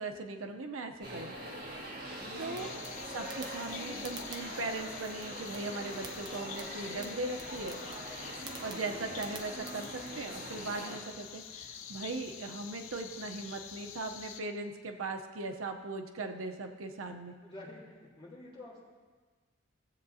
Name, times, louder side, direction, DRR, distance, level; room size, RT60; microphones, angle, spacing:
voice 1, 0.0-1.4 2.4-2.7 3.1-7.8 8.6-17.4, right 3 dB, 80° right, 5 dB, 0.8 m, -39 dB
sound 1, 1.0-11.0, right 1 dB, 50° right, 1.9 m, -43 dB
sound 2, 2.5-10.1, right 3 dB, 20° right, 0.7 m, -52 dB
sound 3, 2.6-14.4, left 8 dB, 85° left, 0.6 m, -47 dB
voice 2, 17.4-18.8, left 2 dB, 25° left, -8 dB, 3.2 m, -49 dB
17.5 x 7.7 x 2.8 m, 1.4 s
head